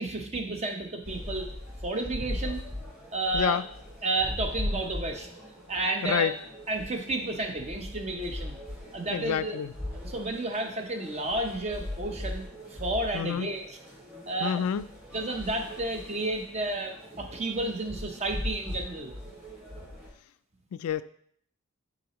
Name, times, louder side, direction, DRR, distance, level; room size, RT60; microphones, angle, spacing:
voice 1, 0.0-1.5 1.8-2.6 3.1-3.6 4.0-5.3 5.7-6.3 6.7-8.6 8.9-9.6 9.9-13.7 14.3-14.6 15.1-19.1, right 2 dB, 30° right, 4 dB, 0.7 m, -31 dB
sound 1, 1.0-20.1, left 1 dB, 5° right, 2.4 m, -39 dB
voice 2, 3.3-3.6 6.0-6.3 9.1-9.7 13.1-13.5 14.4-14.9 20.7-21.0, left 8 dB, 80° left, 15 dB, 0.3 m, -28 dB
9.6 x 3.9 x 3.0 m, 0.65 s
head